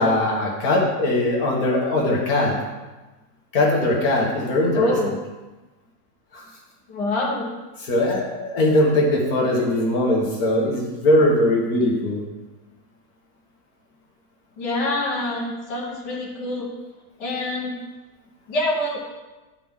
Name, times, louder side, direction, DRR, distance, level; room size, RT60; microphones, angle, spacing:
voice 1, 0.0-2.5 3.5-5.2 7.8-12.2, left 1 dB, 65° left, -1 dB, 2.0 m, -20 dB
voice 2, 4.7-5.2 6.9-7.5 14.6-16.7 17.2-17.8 18.5-19.0, left 2 dB, 90° left, -3 dB, 1.9 m, -26 dB
9.8 x 5.9 x 3.7 m, 1.1 s
omnidirectional pair, 1.7 m